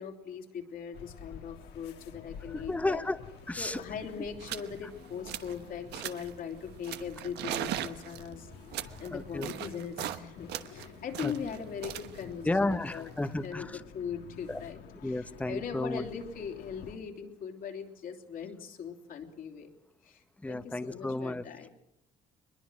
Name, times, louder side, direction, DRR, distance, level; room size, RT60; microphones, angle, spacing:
voice 1, 0.0-3.1 3.6-13.1 13.4-13.7 13.9-19.7 20.0-21.7, left 7 dB, 60° left, 4 dB, 3.2 m, -40 dB
sound 1, 0.9-17.0, left 7 dB, 75° left, 2.3 m, -50 dB
voice 2, 2.5-3.2 3.5-3.8 9.1-9.5 11.2-11.3 12.4-13.8 14.5-14.6 15.0-16.0 20.4-21.4, left 2 dB, 10° left, 11 dB, 0.9 m, -32 dB
sound 2, 3.4-3.5 3.6-3.9 4.4-4.7 5.0-5.6 5.9-6.4 6.8-10.2 10.5-13.5, right 12 dB, 80° right, 1.2 m, -39 dB
22.5 x 21.5 x 6.3 m, 0.82 s
cardioid pair, 110°, 17 cm